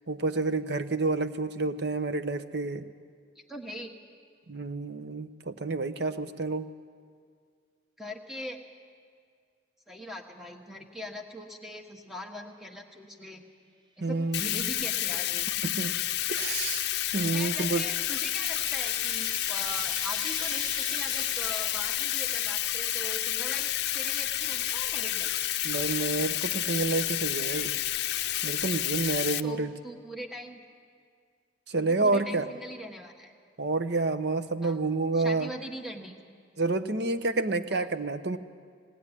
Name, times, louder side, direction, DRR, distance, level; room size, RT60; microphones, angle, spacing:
voice 1, 0.1-2.9 4.5-6.7 14.0-14.7 15.6-16.0 16.3-16.9 17.1-17.8 25.6-27.7 28.4-29.7 31.7-32.4 33.6-35.5 36.6-38.4, right 3 dB, 60° right, 11 dB, 0.9 m, -29 dB
voice 2, 3.3-3.9 8.0-8.6 9.9-13.4 14.0-15.5 17.3-25.3 29.4-30.6 31.9-33.3 34.6-34.8 35.1-36.1 37.7-37.9, equal, ahead, 3 dB, 1.5 m, -41 dB
Bathtub (filling or washing), 14.3-29.4, left 13 dB, 60° left, 0.6 m, -30 dB
sound 1, 15.6-24.7, right 3 dB, 25° right, 0.8 m, -45 dB
19.5 x 18.0 x 9.9 m, 2.1 s
head